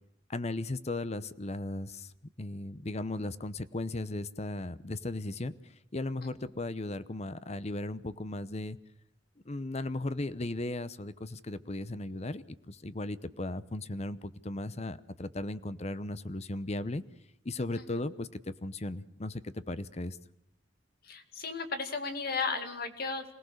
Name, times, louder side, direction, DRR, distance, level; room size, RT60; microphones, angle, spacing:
voice 1, 0.3-2.1 2.4-8.8 9.4-17.0 17.4-20.2, left 2 dB, 35° left, 14 dB, 0.8 m, -36 dB
voice 2, 21.0-23.2, left 4 dB, 55° left, 7 dB, 2.4 m, -34 dB
26.5 x 17.5 x 6.6 m, 0.83 s
head